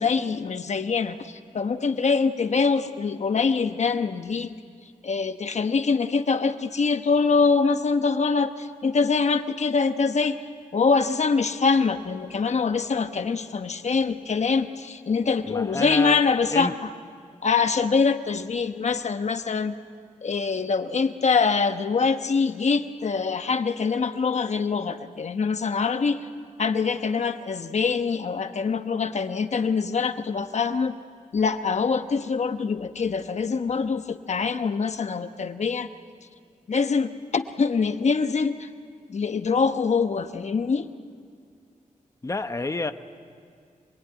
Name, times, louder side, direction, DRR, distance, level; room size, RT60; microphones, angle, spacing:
voice 1, 0.0-4.6 5.0-10.4 10.7-16.9 17.4-19.7 20.2-26.3 26.6-31.0 31.3-35.9 36.7-38.7 39.1-40.9, left 5 dB, 55° left, 9 dB, 1.1 m, -24 dB
voice 2, 15.4-16.2 16.5-16.7 42.2-42.9, left 2 dB, 25° left, 9 dB, 1.0 m, -28 dB
25.5 x 21.5 x 9.5 m, 2.2 s
wide cardioid pair, 120°, 14 cm